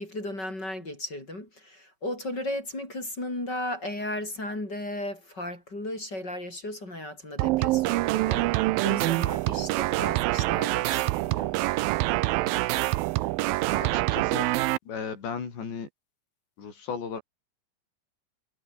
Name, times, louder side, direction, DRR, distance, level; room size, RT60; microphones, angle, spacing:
voice 1, 0.0-8.5 8.8-11.5, left 1 dB, 25° left, 6.4 m, -35 dB
sound 1, 7.4-14.8, right 19 dB, 90° right, 2.0 m, -25 dB
voice 2, 13.7-14.5 14.9-15.9 16.6-17.2, left 6 dB, 80° left, 7.5 m, -35 dB
omnidirectional pair, 5.0 m